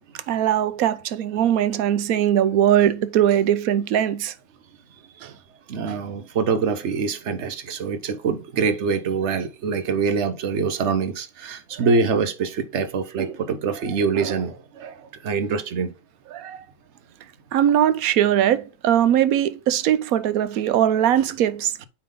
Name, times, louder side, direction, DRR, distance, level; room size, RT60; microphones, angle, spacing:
voice 1, 0.3-4.3 5.2-5.3 5.9-6.0 16.3-16.6 17.5-21.9, right 10 dB, 90° right, 1.1 m, -20 dB
voice 2, 5.7-14.9 15.2-15.9, right 5 dB, 60° right, 1.1 m, -24 dB
8.6 x 3.6 x 3.8 m
omnidirectional pair, 1.4 m